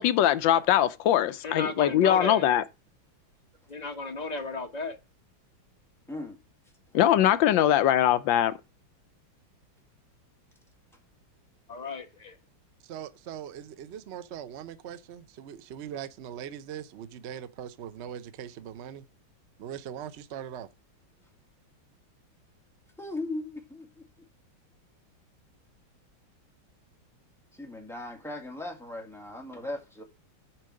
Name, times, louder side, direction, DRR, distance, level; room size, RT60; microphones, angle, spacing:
voice 1, 0.0-2.6 6.9-8.5, left 11 dB, 75° left, 1.2 m, -22 dB
voice 2, 1.4-2.5 3.7-5.0 11.7-12.4, left 3 dB, 25° left, 0.9 m, -34 dB
voice 3, 12.8-19.0 19.6-20.7, right 9 dB, 75° right, 0.6 m, -40 dB
voice 4, 23.0-24.0 27.6-30.0, left 2 dB, ahead, 1.7 m, -38 dB
7.5 x 4.7 x 6.3 m
omnidirectional pair, 2.2 m